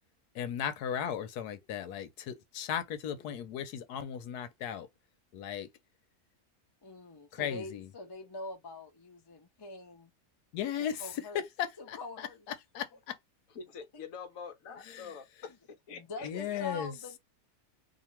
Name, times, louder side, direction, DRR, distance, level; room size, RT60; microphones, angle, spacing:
voice 1, 0.3-4.9 5.3-5.7 7.3-7.9 10.5-11.3 11.6-12.3 12.7-13.2 14.9-15.1 16.2-16.9, left 9 dB, 85° left, 1.2 m, -36 dB
voice 2, 6.8-10.1 11.0-11.4 11.8-12.4 13.9-14.0 14.7-14.8 15.9-17.2, left 2 dB, 25° left, 0.5 m, -44 dB
voice 3, 13.5-16.6, left 6 dB, 65° left, 1.2 m, -47 dB
2.8 x 2.5 x 4.3 m
omnidirectional pair, 1.6 m